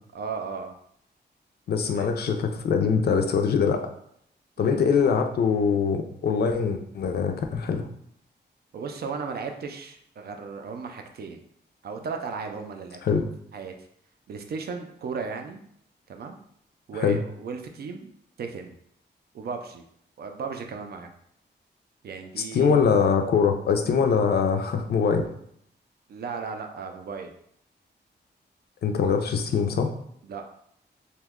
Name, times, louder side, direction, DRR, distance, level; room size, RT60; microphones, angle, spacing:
voice 1, 0.1-0.7 1.9-2.1 4.6-4.8 8.7-11.4 11.8-13.3 13.5-13.7 14.3-15.6 16.1-16.4 16.9-18.1 18.4-18.8 19.3-19.8 20.2-21.1 22.0-22.8 26.1-27.3 30.2-30.4, right 5 dB, 60° right, 5 dB, 0.4 m, -35 dB
voice 2, 1.7-3.9 4.6-7.9 13.0-13.2 16.9-17.2 22.5-25.3 28.8-29.9, left 6 dB, 60° left, 5 dB, 0.4 m, -23 dB
2.9 x 2.2 x 3.5 m, 0.69 s
wide cardioid pair, 175°, 18 cm